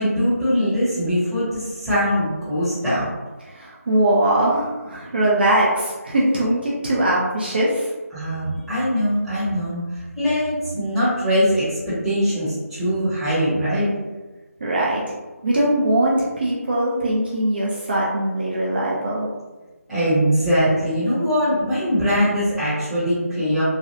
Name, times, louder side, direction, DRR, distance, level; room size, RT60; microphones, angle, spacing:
voice 1, 0.0-3.1 8.1-13.9 19.9-23.6, equal, ahead, -17 dB, 0.8 m, -22 dB
voice 2, 3.4-7.9 14.6-15.0 15.4-19.3, right 1 dB, 40° right, -5 dB, 0.5 m, -21 dB
3.1 x 2.2 x 2.8 m, 1.2 s
figure-of-eight pair, 165°, 8 cm